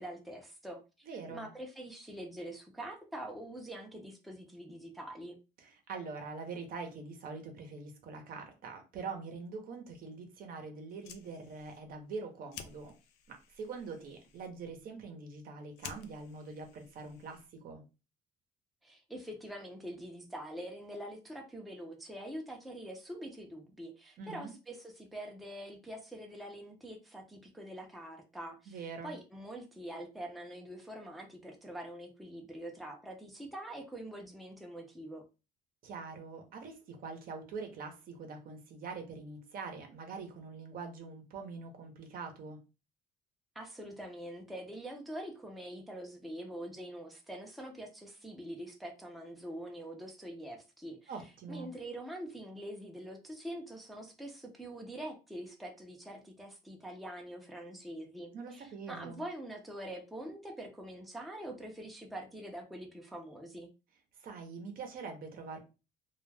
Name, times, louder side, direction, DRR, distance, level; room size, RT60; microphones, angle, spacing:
voice 1, 0.0-5.4 18.8-35.2 43.6-51.1 51.5-63.7, right 1 dB, ahead, 1 dB, 0.5 m, -44 dB
voice 2, 1.1-1.5 5.6-12.9 13.3-17.8 24.2-24.5 28.7-29.2 35.8-42.6 51.1-51.7 58.3-59.2 64.2-65.6, right 4 dB, 60° right, 4 dB, 0.7 m, -44 dB
Fire, 10.8-17.7, left 8 dB, 85° left, 0.4 m, -53 dB
2.3 x 2.2 x 3.2 m, 0.30 s
cardioid pair, 110°, 17 cm